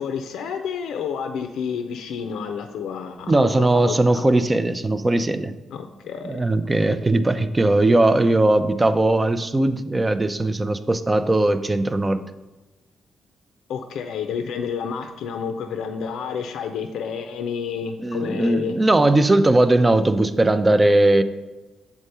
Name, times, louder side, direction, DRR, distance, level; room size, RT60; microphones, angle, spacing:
voice 1, 0.0-4.3 5.7-6.4 6.9-7.0 13.7-18.8, left 6 dB, 85° left, 6 dB, 0.5 m, -30 dB
voice 2, 3.3-5.5 6.2-12.2 18.0-21.2, right 2 dB, 20° right, 10 dB, 0.5 m, -19 dB
7.8 x 3.7 x 5.4 m, 1.2 s
cardioid pair, 95°, 0 cm